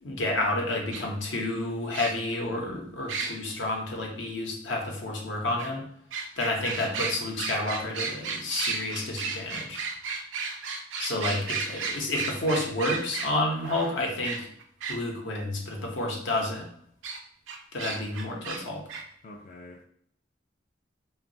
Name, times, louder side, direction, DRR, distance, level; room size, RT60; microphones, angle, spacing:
voice 1, 0.0-5.8 6.4-9.8 11.0-14.5 14.9-16.7 17.7-18.8, left 2 dB, 75° left, 1 dB, 0.7 m, -30 dB
sound 1, 0.9-1.0 1.9-2.3 3.1-3.3 5.6-5.7 6.1-15.0 17.0-17.2 17.5-18.6 18.9-19.0, right 5 dB, 90° right, 0.4 m, -33 dB
voice 2, 19.2-19.8, left 2 dB, 40° left, 0 dB, 0.3 m, -46 dB
2.9 x 2.2 x 2.6 m, 0.65 s
head